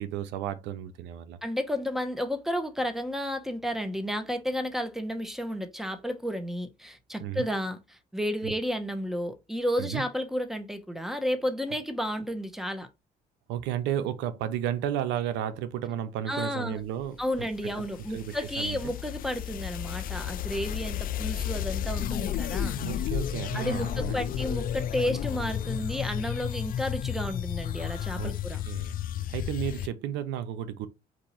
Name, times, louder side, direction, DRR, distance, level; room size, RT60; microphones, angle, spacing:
voice 1, 0.0-1.4 7.2-7.5 8.4-8.5 9.8-10.0 13.5-17.2 17.8-17.9 18.1-18.9 22.8-24.2 28.2-28.3 28.7-29.0 29.3-30.9, right 10 dB, 85° right, 0.6 m, -33 dB
voice 2, 1.4-12.9 16.3-16.8 17.2-22.7 23.5-28.6, equal, ahead, 1.0 m, -32 dB
sound 1, 17.0-29.9, left 10 dB, 55° left, 0.4 m, -32 dB
4.3 x 2.7 x 4.2 m
cardioid pair, 85°, 18 cm